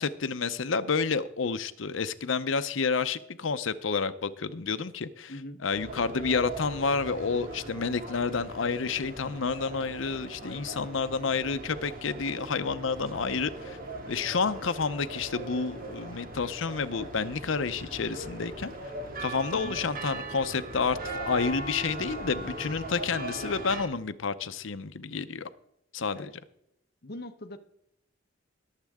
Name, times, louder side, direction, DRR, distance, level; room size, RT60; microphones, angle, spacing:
voice 1, 0.0-5.3 5.6-13.8 14.1-18.7 19.2-21.0 21.3-25.5 25.9-26.3, left 5 dB, 85° left, 12 dB, 0.7 m, -30 dB
voice 2, 5.3-5.6 10.4-10.8 19.5-19.8 26.2-26.3 27.0-27.6, left 1 dB, 55° left, 8 dB, 1.0 m, -42 dB
sound 1, 5.7-23.8, right 2 dB, 50° right, 2.0 m, -40 dB
21.0 x 7.5 x 3.6 m, 0.79 s
head